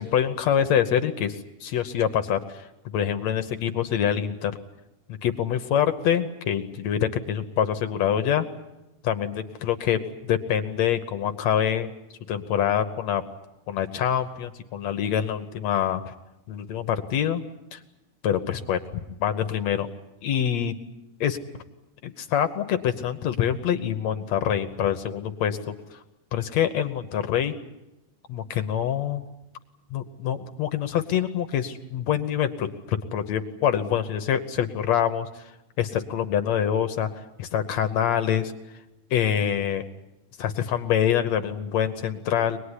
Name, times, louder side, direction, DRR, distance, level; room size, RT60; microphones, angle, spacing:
voice 1, 0.0-2.7 2.9-4.6 5.2-8.5 9.0-11.9 12.3-13.2 13.7-16.1 16.5-17.4 17.7-17.8 18.2-19.9 20.2-20.8 21.2-21.4 22.0-26.0 26.3-27.5 28.3-29.2 29.9-35.4 35.8-38.5 39.1-39.9 40.4-42.6, left 9 dB, 65° left, 9 dB, 1.9 m, -25 dB
25.0 x 20.0 x 9.8 m, 0.98 s
omnidirectional pair, 4.0 m